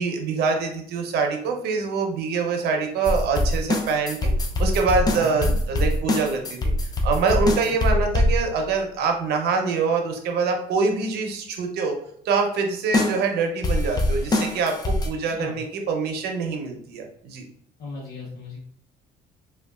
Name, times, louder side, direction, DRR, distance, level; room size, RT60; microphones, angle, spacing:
voice 1, 0.0-4.3 4.6-6.7 7.0-12.0 12.2-17.4, right 4 dB, 75° right, 3 dB, 0.6 m, -25 dB
sound 1, 3.0-8.7 12.9-13.2 13.6-15.1, left 1 dB, 25° left, 0.4 m, -23 dB
voice 2, 5.1-5.5 7.4-7.5 15.2-15.5 17.8-18.6, left 3 dB, 80° left, -4 dB, 0.7 m, -36 dB
3.0 x 2.3 x 2.3 m, 0.64 s
cardioid pair, 110°, 17 cm